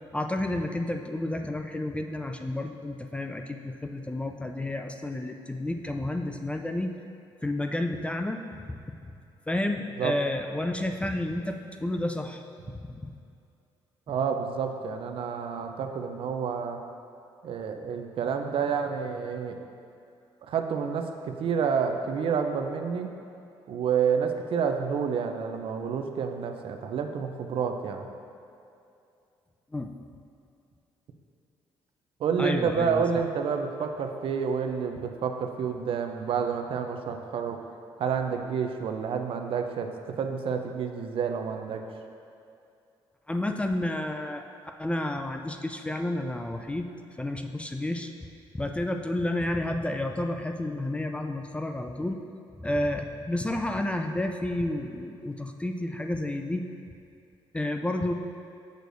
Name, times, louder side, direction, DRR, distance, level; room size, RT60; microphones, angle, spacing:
voice 1, 0.1-6.9 7.4-8.8 9.5-12.4 12.8-13.1 29.7-29.9 32.4-33.0 43.3-44.5 44.8-46.9 47.2-48.1 48.5-52.2 52.6-56.7 57.5-58.1, left 1 dB, 10° left, 5 dB, 0.3 m, -30 dB
voice 2, 14.1-16.8 17.4-19.6 20.4-23.1 23.7-28.1 32.2-37.6 38.0-41.8, right 6 dB, 60° right, 5 dB, 0.5 m, -29 dB
6.6 x 6.4 x 2.6 m, 2.6 s
cardioid pair, 85°, 10 cm